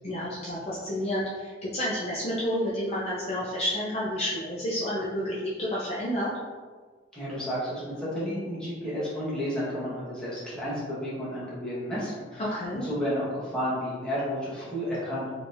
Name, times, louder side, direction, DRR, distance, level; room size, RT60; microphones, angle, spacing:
voice 1, 0.0-6.3 12.4-12.9, equal, 35° left, -7 dB, 0.5 m, -30 dB
voice 2, 7.1-15.3, equal, 5° left, -10 dB, 1.2 m, -32 dB
3.8 x 3.0 x 2.5 m, 1.5 s
head